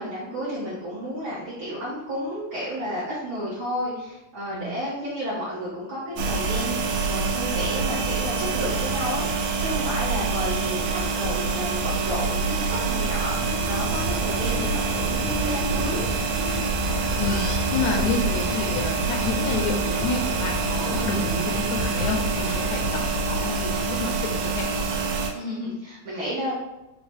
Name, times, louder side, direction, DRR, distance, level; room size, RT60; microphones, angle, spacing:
voice 1, 0.0-16.0 25.3-26.5, equal, 65° right, -7 dB, 1.3 m, -32 dB
sound 1, 6.2-25.3, right 4 dB, 85° right, 1.9 m, -26 dB
sound 2, 13.3-23.5, left 1 dB, 45° left, 0.4 m, -36 dB
sound 3, 13.9-14.7 15.2-16.7 17.2-19.7 20.0-22.7, left 2 dB, 65° left, 0.9 m, -36 dB
voice 2, 17.7-23.0 23.3-24.8, left 4 dB, 80° left, 2 dB, 1.9 m, -29 dB
5.2 x 2.0 x 3.4 m, 0.97 s
omnidirectional pair, 3.4 m